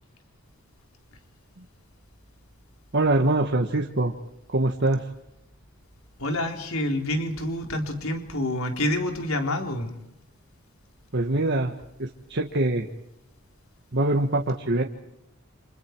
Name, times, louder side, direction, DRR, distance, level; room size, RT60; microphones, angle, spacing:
voice 1, 2.9-4.1 4.5-5.1 11.1-11.7 12.0-12.9 13.9-14.8, right 2 dB, 55° right, 2 dB, 1.7 m, -24 dB
voice 2, 6.2-9.9, left 1 dB, 75° left, 4 dB, 4.1 m, -27 dB
29.5 x 27.5 x 4.7 m, 0.84 s
head